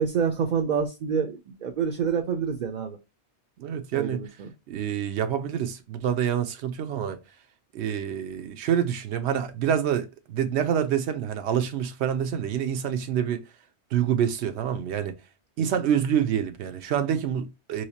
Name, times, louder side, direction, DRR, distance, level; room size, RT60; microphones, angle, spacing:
voice 1, 0.0-3.0 3.9-4.5, right 6 dB, 55° right, 0.5 m, -27 dB
voice 2, 3.6-4.2 4.7-7.2 7.7-13.4 13.9-15.1 15.6-17.8, right 9 dB, 85° right, 0.9 m, -27 dB
3.2 x 2.7 x 2.7 m
omnidirectional pair, 1.1 m